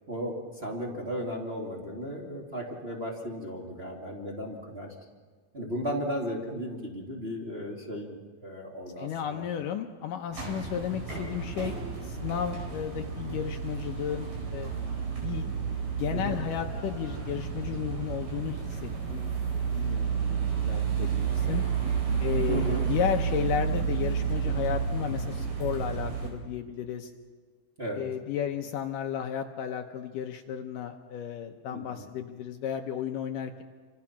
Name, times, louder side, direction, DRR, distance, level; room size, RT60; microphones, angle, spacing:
voice 1, 0.1-4.9 5.5-9.4 16.1-16.4 22.5-22.8 27.8-28.0 31.7-32.1, equal, 20° right, -3 dB, 2.3 m, -35 dB
voice 2, 9.0-11.8 12.0-14.7 15.2-15.5 16.0-21.6 22.2-27.1 28.0-33.6, left 9 dB, 75° left, 5 dB, 2.3 m, -33 dB
sound 1, 10.3-26.3, right 6 dB, 65° right, 5.8 m, -31 dB
28.5 x 25.5 x 6.0 m, 1.5 s
omnidirectional pair, 4.3 m